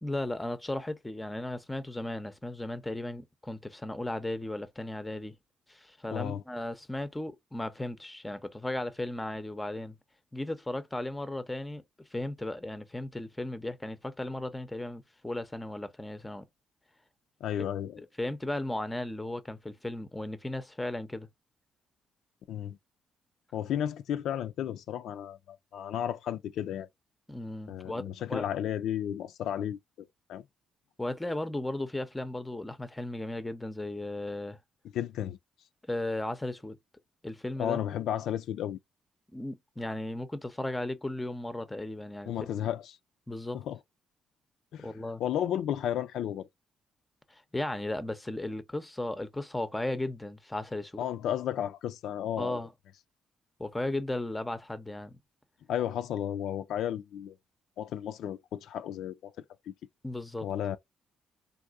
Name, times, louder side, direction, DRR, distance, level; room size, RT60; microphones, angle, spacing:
voice 1, 0.0-5.4 5.7-10.0 10.3-11.8 12.1-16.4 18.0-21.3 27.3-28.0 28.3-28.5 31.0-34.6 35.9-36.8 37.2-37.8 39.3-42.3 43.3-43.6 44.8-45.2 47.3-51.0 52.4-52.7 53.6-55.2 60.0-60.5, left 1 dB, 10° left, 0.6 m, -35 dB
voice 2, 6.1-6.4 17.4-18.0 22.5-22.8 23.5-26.9 27.7-29.8 30.3-30.4 34.9-35.4 37.6-38.8 42.3-42.9 43.5-43.8 44.7-44.9 45.2-46.5 51.0-52.6 55.7-57.4 57.8-59.3 59.7-59.8 60.4-60.8, left 10 dB, 80° left, 0.3 m, -33 dB
3.6 x 2.6 x 2.3 m
cardioid pair, 90°, 0 cm